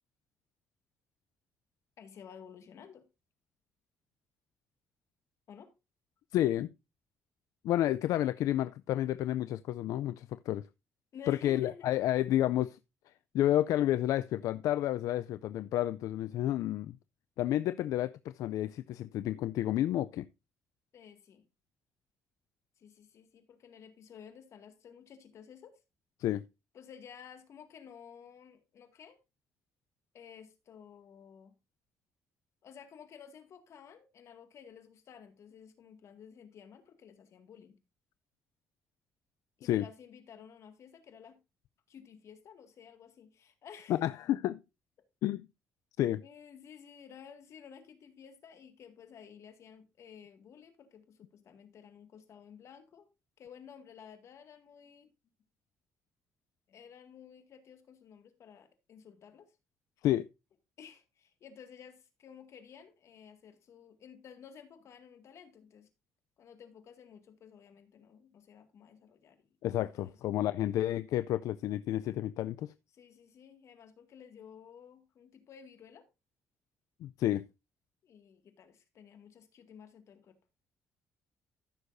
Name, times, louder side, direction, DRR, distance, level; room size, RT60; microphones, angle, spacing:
voice 1, 2.0-3.1 5.5-5.7 11.1-11.9 20.9-21.4 22.8-25.8 26.7-29.2 30.1-31.5 32.6-37.8 39.6-41.4 41.9-44.0 46.2-53.1 53.4-55.1 56.7-59.5 60.8-65.9 66.4-69.5 69.9-70.2 72.9-76.1 78.0-80.4, left 7 dB, 60° left, 1.9 m, -53 dB
voice 2, 6.3-6.7 7.6-10.6 11.3-12.8 13.3-17.0 17.4-20.3 26.2-26.4 39.6-39.8 43.9-44.6 45.2-45.5 46.0-46.2 60.0-60.3 69.6-72.7 77.0-77.4, left 13 dB, 80° left, 0.4 m, -30 dB
14.5 x 6.4 x 2.6 m
cardioid pair, 115°, 6 cm